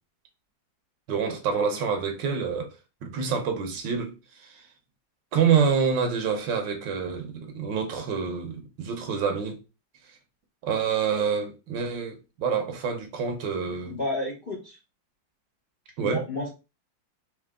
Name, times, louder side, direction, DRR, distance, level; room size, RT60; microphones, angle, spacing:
voice 1, 1.1-2.7 3.0-4.1 4.4-4.6 5.3-9.6 10.6-14.0 16.0-16.2, right 6 dB, 70° right, 1.6 m, -27 dB
voice 2, 13.8-14.8 16.0-16.5, left 1 dB, 40° left, 0.9 m, -31 dB
4.8 x 3.1 x 3.6 m
omnidirectional pair, 2.1 m